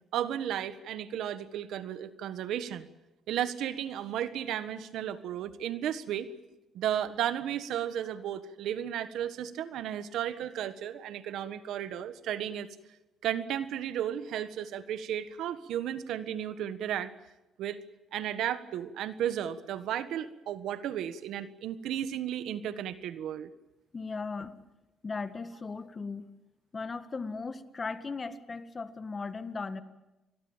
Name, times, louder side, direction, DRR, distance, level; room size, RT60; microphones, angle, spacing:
voice 1, 0.1-2.9 3.3-6.3 6.7-12.7 13.2-17.1 17.6-17.8 18.1-23.5, right 10 dB, 80° right, 12 dB, 1.5 m, -34 dB
voice 2, 23.9-24.6 25.0-26.3 26.7-29.8, left 4 dB, 35° left, 11 dB, 1.7 m, -37 dB
29.0 x 21.5 x 7.4 m, 0.99 s
cardioid pair, 90°, 0 cm